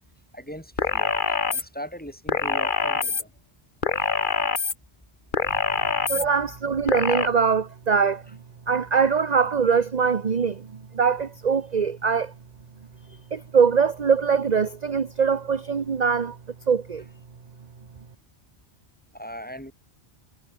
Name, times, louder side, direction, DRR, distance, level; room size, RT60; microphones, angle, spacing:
voice 1, 0.3-3.3 19.1-19.7, equal, 10° left, 7.1 m, -39 dB
sound 1, 0.8-1.6 2.3-3.2 3.8-4.7 5.3-6.2 6.9-7.3, left 5 dB, 50° left, 1.6 m, -24 dB
voice 2, 6.1-8.2 8.7-12.3 13.3-16.4 16.7-17.0, right 6 dB, 40° right, 1.0 m, -22 dB
omnidirectional pair, 1.1 m